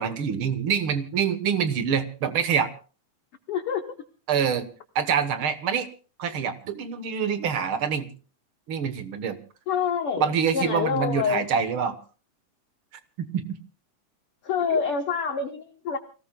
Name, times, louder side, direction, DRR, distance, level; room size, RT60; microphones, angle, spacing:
voice 1, 0.0-2.7 4.3-4.7 4.9-5.9 6.2-8.1 8.7-9.4 10.2-12.0 13.2-13.4 14.7-14.8, right 7 dB, 60° right, 10 dB, 1.5 m, -26 dB
voice 2, 3.5-3.8 9.7-11.4 14.4-16.0, left 7 dB, 60° left, 6 dB, 1.6 m, -27 dB
29.0 x 18.0 x 2.3 m, 0.37 s
omnidirectional pair, 3.7 m